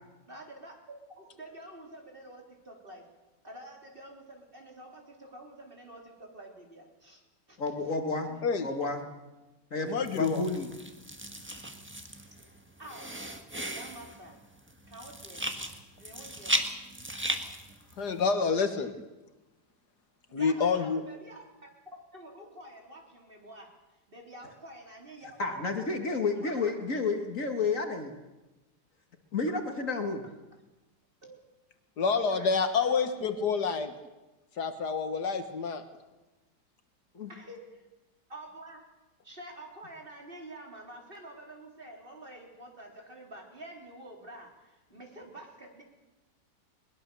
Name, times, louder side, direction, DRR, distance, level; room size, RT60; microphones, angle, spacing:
voice 1, 0.3-0.8 1.1-3.1 3.4-7.2 7.5-7.6 8.2-8.7 12.8-13.2 13.7-14.4 14.9-15.4 15.9-16.7 20.3-21.4 22.1-23.7 24.1-25.9 26.4-26.7 31.2-31.3 32.3-33.1 37.3-37.9 38.3-38.9 39.2-45.8, right 1 dB, 30° right, 1 dB, 3.9 m, -48 dB
voice 2, 7.6-9.1 9.7-10.7 25.4-28.1 29.3-30.2 37.1-37.3, left 3 dB, 50° left, 5 dB, 2.0 m, -31 dB
voice 3, 9.9-10.4 18.0-18.9 20.3-21.0 32.0-33.9 34.6-35.8, left 5 dB, 75° left, 8 dB, 1.9 m, -28 dB
sound 1, 10.0-18.3, right 1 dB, 5° right, 1.3 m, -37 dB
21.5 x 21.0 x 6.9 m, 1.1 s
omnidirectional pair, 1.8 m